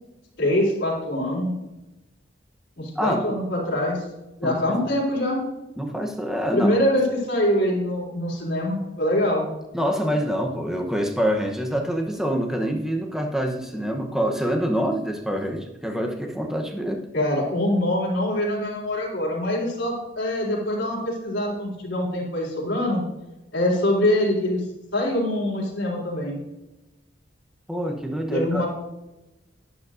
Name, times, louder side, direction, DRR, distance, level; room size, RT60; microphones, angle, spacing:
voice 1, 0.4-1.5 2.8-4.0 4.4-5.4 6.5-9.5 17.1-23.0 23.5-24.6 24.9-26.4 28.2-28.7, left 1 dB, 60° left, -4 dB, 3.9 m, -24 dB
voice 2, 3.0-3.4 4.4-4.5 5.8-6.8 9.7-17.0 27.7-28.6, equal, ahead, 2 dB, 0.8 m, -26 dB
11.0 x 10.5 x 2.6 m, 1.0 s
head